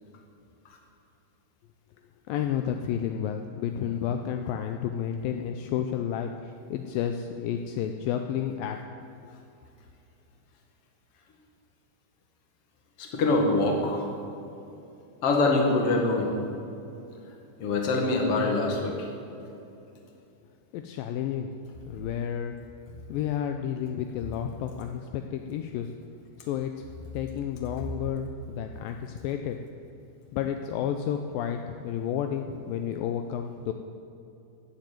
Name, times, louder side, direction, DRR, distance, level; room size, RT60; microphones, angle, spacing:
voice 1, 2.3-8.8 20.7-21.6 21.9-22.5 23.1-25.9 26.4-26.9 27.1-29.6 30.3-33.7, left 9 dB, 80° left, 5 dB, 2.2 m, -31 dB
voice 2, 13.0-14.1 15.2-16.3 17.6-19.1, left 2 dB, 45° left, 1 dB, 2.4 m, -24 dB
14.5 x 7.6 x 9.3 m, 2.8 s
omnidirectional pair, 4.4 m